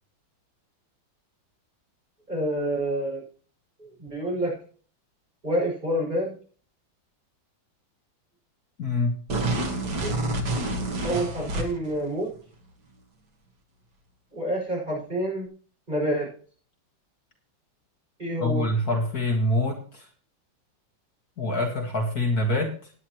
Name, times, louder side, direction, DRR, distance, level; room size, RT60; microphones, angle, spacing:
voice 1, 2.3-3.2 3.8-4.5 5.4-6.3 10.0-10.1 11.0-12.3 14.3-15.5 15.9-16.3 18.2-18.7, right 1 dB, 25° right, -3 dB, 6.3 m, -28 dB
voice 2, 8.8-9.1 18.4-20.1 21.4-22.9, left 1 dB, 55° left, 3 dB, 2.2 m, -25 dB
sound 1, 9.3-12.0, right 2 dB, 60° right, 2.4 m, -28 dB
17.5 x 9.7 x 3.0 m, 0.43 s
omnidirectional pair, 2.1 m